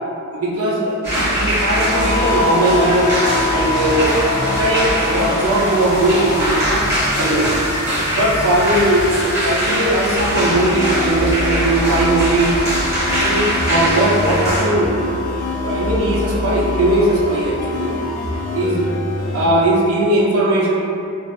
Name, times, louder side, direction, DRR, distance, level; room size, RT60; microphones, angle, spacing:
voice 1, 0.3-3.2 3.5-6.9 7.2-7.5 8.1-12.5 13.0-18.0 18.5-18.8 19.3-20.7, right 1 dB, 70° right, -4 dB, 0.5 m, -19 dB
sound 1, 1.0-14.6, equal, 15° right, 1.1 m, -22 dB
sound 2, 1.7-18.7, left 2 dB, 45° left, 1.2 m, -27 dB
sound 3, 10.2-19.5, left 2 dB, 65° left, 0.4 m, -26 dB
3.1 x 2.5 x 2.3 m, 2.7 s
head